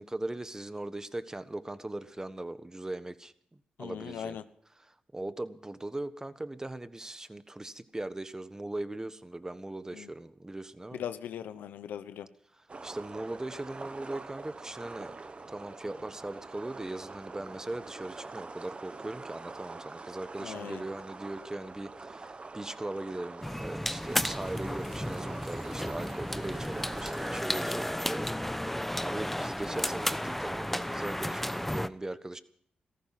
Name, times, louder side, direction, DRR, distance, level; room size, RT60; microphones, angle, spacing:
voice 1, 0.0-3.3 3.8-4.4 4.9-11.0 12.8-15.2 15.5-32.4, right 2 dB, 20° right, 12 dB, 1.4 m, -39 dB
voice 2, 3.8-4.4 9.9-10.1 10.9-12.3 20.4-20.8, left 9 dB, 90° left, 12 dB, 0.9 m, -39 dB
sound 1, 12.7-27.4, right 3 dB, 40° right, 1.2 m, -44 dB
sound 2, 23.4-31.9, left 1 dB, 5° left, 0.8 m, -33 dB
17.0 x 14.5 x 5.8 m, 0.62 s
cardioid pair, 60°, 3 cm